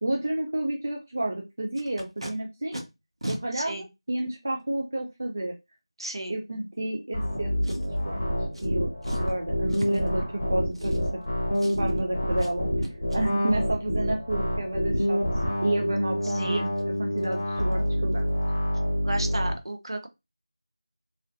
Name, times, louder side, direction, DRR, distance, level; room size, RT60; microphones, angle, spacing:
voice 1, 0.0-2.8 3.3-5.5 6.3-8.2 8.6-8.9 9.2-11.0 11.8-12.7 13.1-15.2 15.6-18.2, right 1 dB, 25° right, 1 dB, 0.3 m, -30 dB
Packing tape duct tape, 1.7-2.3 2.7-2.8 3.2-3.4 4.2-4.3 7.6-8.1 8.5-8.7 9.0-9.3 9.7-10.1 10.7-11.3 11.5-12.0 12.4-12.5 12.8-13.2 16.2-16.3 16.7-16.8 17.2-17.3 17.6-17.9 18.1-18.2, right 1 dB, 75° right, 1.1 m, -38 dB
voice 2, 3.5-3.8 6.0-6.3 16.4-16.6 19.0-20.1, right 1 dB, 55° right, 5 dB, 0.7 m, -33 dB
sound 1, 7.1-19.5, equal, 15° left, 0.9 m, -27 dB
3.0 x 2.7 x 2.5 m, 0.23 s
figure-of-eight pair, 175°, 3 cm